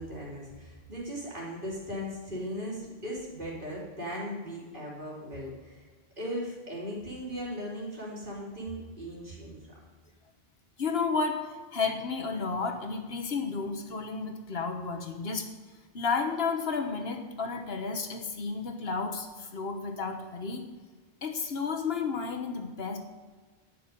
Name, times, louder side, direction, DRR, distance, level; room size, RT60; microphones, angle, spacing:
voice 1, 0.0-5.8 6.2-9.6, equal, 50° right, -5 dB, 3.7 m, -38 dB
voice 2, 10.8-15.5 15.9-20.6 21.2-23.0, left 4 dB, 70° left, 5 dB, 1.3 m, -32 dB
11.5 x 8.7 x 5.3 m, 1.4 s
omnidirectional pair, 1.1 m